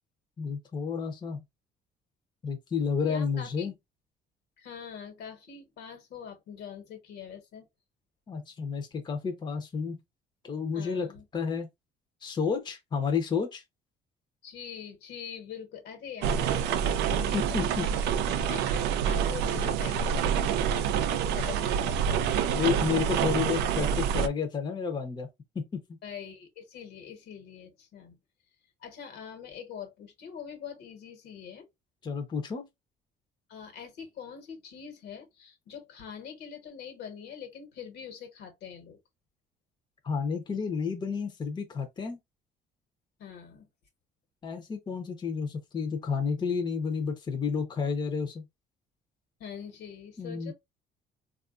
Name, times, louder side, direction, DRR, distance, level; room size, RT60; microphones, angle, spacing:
voice 1, 0.4-1.4 2.4-3.7 8.3-10.0 10.4-11.1 11.3-11.7 12.2-13.6 17.3-17.8 22.5-25.3 25.5-25.8 32.0-32.6 40.0-42.2 44.4-48.4 50.2-50.5, left 6 dB, 25° left, 0.6 m, -31 dB
voice 2, 3.0-3.7 4.6-7.7 10.7-11.2 14.4-18.0 18.3-22.6 26.0-28.2 28.8-31.7 33.5-39.0 43.2-43.7 49.4-50.5, left 7 dB, 75° left, 1.2 m, -44 dB
sound 1, 16.2-24.3, right 8 dB, 85° right, 0.4 m, -27 dB
3.5 x 2.4 x 2.4 m
cardioid pair, 110°, 17 cm